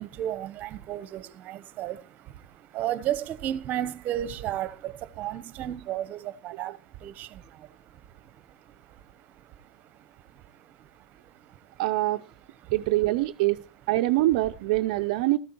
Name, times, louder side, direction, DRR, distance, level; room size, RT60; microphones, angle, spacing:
voice 1, 0.0-11.8 12.6-12.7, right 12 dB, 40° right, 1.0 m, -35 dB
voice 2, 11.8-12.2 12.7-13.6 13.9-15.4, right 17 dB, 65° right, 0.5 m, -24 dB
15.0 x 13.5 x 3.1 m
hypercardioid pair, 110°, 4 cm